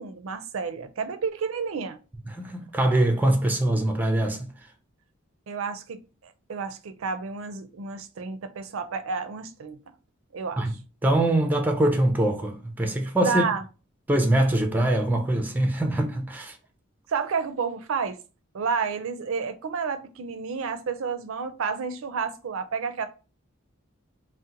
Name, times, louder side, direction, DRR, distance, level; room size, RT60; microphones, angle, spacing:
voice 1, 0.0-2.0 5.5-6.0 6.5-9.8 10.3-10.7 13.2-13.6 17.1-18.2 18.5-23.1, right 5 dB, 70° right, 0.4 m, -30 dB
voice 2, 2.3-4.5 10.6-10.8 11.0-13.4 14.1-16.6, right 1 dB, 10° right, 0.4 m, -23 dB
2.7 x 2.1 x 3.7 m
head